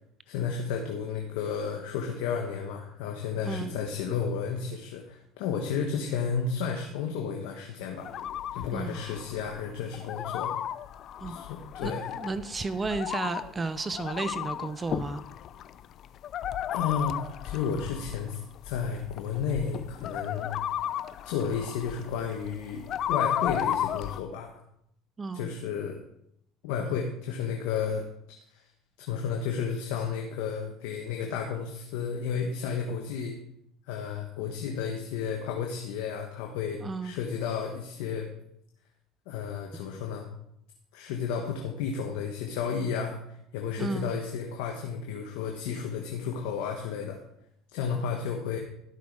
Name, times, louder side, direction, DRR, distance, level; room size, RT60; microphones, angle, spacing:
voice 1, 0.3-8.1 8.5-10.5 11.2-12.0 16.7-20.5 21.2-24.5 25.3-26.0 26.6-28.0 29.1-33.3 33.9-38.3 39.3-40.3 40.9-43.2 43.5-47.2 47.7-48.6, left 6 dB, 80° left, 2 dB, 1.2 m, -32 dB
sound 1, 8.0-24.2, left 10 dB, 55° left, 0.5 m, -34 dB
voice 2, 11.8-15.2 25.2-25.5 36.8-37.2 43.8-44.2, right 3 dB, 25° right, 13 dB, 0.6 m, -33 dB
12.0 x 6.1 x 4.8 m, 0.74 s
supercardioid pair, 85°, 0 cm